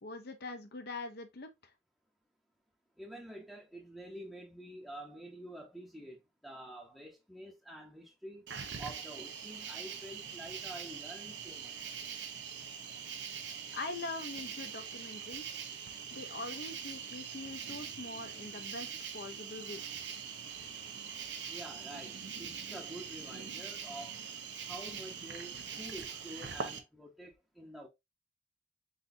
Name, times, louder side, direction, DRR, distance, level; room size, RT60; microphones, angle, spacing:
voice 1, 0.0-1.7 13.2-13.5 13.7-15.6 16.1-19.8, left 2 dB, 60° left, 0.7 m, -43 dB
voice 2, 3.0-8.5 8.8-11.8 21.5-24.3 24.6-27.9, right 1 dB, ahead, 0.8 m, -48 dB
Cricket, 8.5-26.8, right 7 dB, 70° right, 0.7 m, -43 dB
4.0 x 4.0 x 2.6 m
head